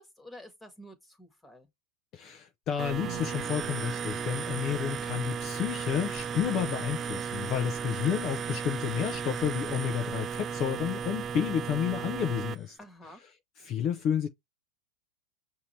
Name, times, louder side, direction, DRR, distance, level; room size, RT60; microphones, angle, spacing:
voice 1, 0.0-1.7 12.8-13.2, equal, 5° left, 1.4 m, -50 dB
voice 2, 2.1-12.8 13.6-14.3, left 9 dB, 35° left, 0.6 m, -31 dB
sound 1, 2.8-12.6, right 6 dB, 25° right, 0.4 m, -35 dB
Piano, 3.0-10.4, right 13 dB, 55° right, 0.9 m, -53 dB
5.7 x 2.8 x 3.2 m
hypercardioid pair, 130°, 0 cm